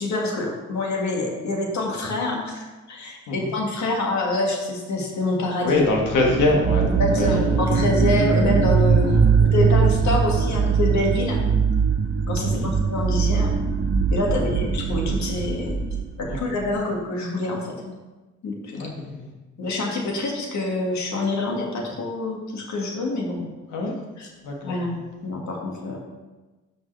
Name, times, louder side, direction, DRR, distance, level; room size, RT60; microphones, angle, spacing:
voice 1, 0.0-5.8 7.0-11.4 12.3-13.5 14.1-15.8 16.2-17.9 18.4-18.8 19.6-23.4 24.2-24.3 24.6-26.0, left 2 dB, 65° left, 0 dB, 2.1 m, -26 dB
voice 2, 5.6-7.6 9.0-9.2 12.4-12.7 14.3-14.6 16.3-16.5 18.7-19.3 23.7-23.9 24.4-24.8, left 2 dB, 85° left, 0 dB, 1.9 m, -24 dB
sound 1, 6.0-16.6, right 5 dB, 40° right, 0.8 m, -21 dB
12.5 x 5.4 x 3.4 m, 1.2 s
cardioid pair, 90°, 30 cm